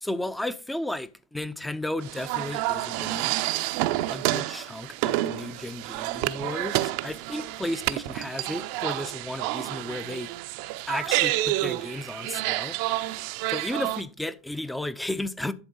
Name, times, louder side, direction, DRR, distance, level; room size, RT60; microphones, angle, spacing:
voice 1, 0.0-3.3 4.1-10.3 10.9-12.8 13.5-15.5, left 1 dB, 5° left, 0.6 m, -33 dB
sound 1, 2.0-14.0, right 16 dB, 65° right, 0.6 m, -29 dB
11.0 x 3.9 x 5.4 m
supercardioid pair, 125°, 0 cm